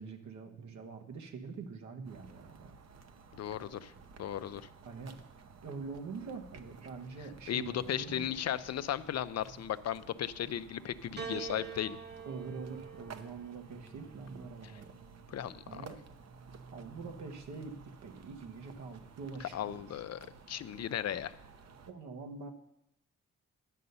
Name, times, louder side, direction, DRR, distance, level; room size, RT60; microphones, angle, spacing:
voice 1, 0.0-2.7 4.8-5.2 5.6-8.6 11.2-11.3 12.3-14.9 15.6-16.0 16.7-20.0 21.9-22.5, right 4 dB, 80° right, 4 dB, 1.2 m, -45 dB
sound 1, 2.0-21.9, right 5 dB, 60° right, 0.9 m, -54 dB
voice 2, 3.4-3.9 4.2-4.6 7.5-12.0 15.3-15.8 19.4-21.3, left 10 dB, 60° left, 14 dB, 0.5 m, -36 dB
Piano, 11.2-15.7 16.7-17.4, right 6 dB, 35° right, 1.2 m, -47 dB
10.0 x 6.6 x 5.5 m, 0.85 s
supercardioid pair, 45°, 29 cm